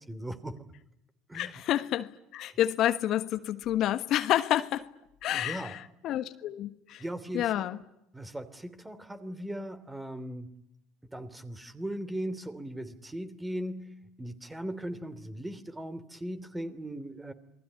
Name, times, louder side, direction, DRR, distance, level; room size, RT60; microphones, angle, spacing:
voice 1, 0.1-0.6 1.3-1.5 5.3-5.8 7.0-7.6 8.1-10.5 11.1-17.3, right 1 dB, 10° right, 11 dB, 3.1 m, -38 dB
voice 2, 1.3-4.9 5.2-7.0 7.3-7.8, left 12 dB, 55° left, 10 dB, 1.4 m, -29 dB
28.0 x 20.0 x 9.7 m, 0.82 s
hypercardioid pair, 65°, 0 cm